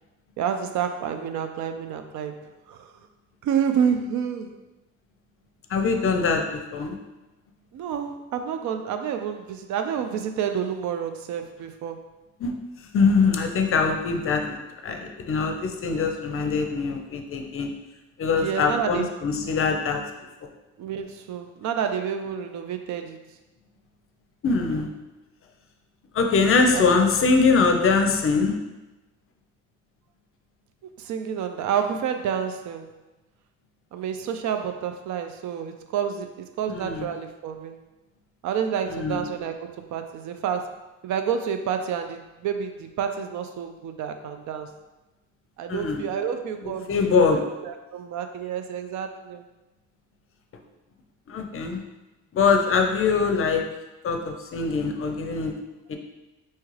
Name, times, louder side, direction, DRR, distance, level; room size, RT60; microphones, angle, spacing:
voice 1, 0.4-2.4 2.7-2.9 3.4-4.5 7.7-12.1 18.3-19.1 20.8-23.2 26.7-26.9 31.0-32.9 33.9-37.8 38.4-40.7 41.0-44.7 45.6-49.4, right 8 dB, 70° right, 7 dB, 0.4 m, -29 dB
voice 2, 5.7-7.0 12.4-12.5 12.9-14.6 14.8-17.7 18.2-20.0 24.4-24.9 26.1-28.6 36.7-37.1 38.9-39.2 45.7-46.0 46.9-47.4 51.3-51.8 52.3-53.6 54.0-55.5 55.9-56.0, left 4 dB, 45° left, 4 dB, 0.5 m, -22 dB
4.3 x 2.3 x 3.1 m, 1.1 s
cardioid pair, 90°, 30 cm